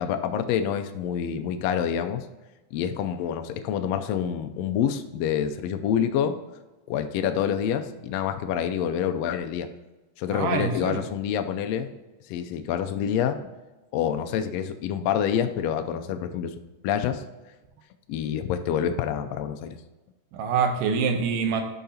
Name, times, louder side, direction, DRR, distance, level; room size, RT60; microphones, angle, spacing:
voice 1, 0.0-2.3 2.7-6.4 6.9-9.7 10.2-11.9 12.3-13.4 13.9-16.5 16.8-17.2 18.1-19.8, left 9 dB, 90° left, 7 dB, 1.4 m, -27 dB
voice 2, 10.3-11.0 20.3-21.6, right 5 dB, 90° right, 5 dB, 2.5 m, -25 dB
13.0 x 5.7 x 2.8 m, 1.1 s
omnidirectional pair, 3.6 m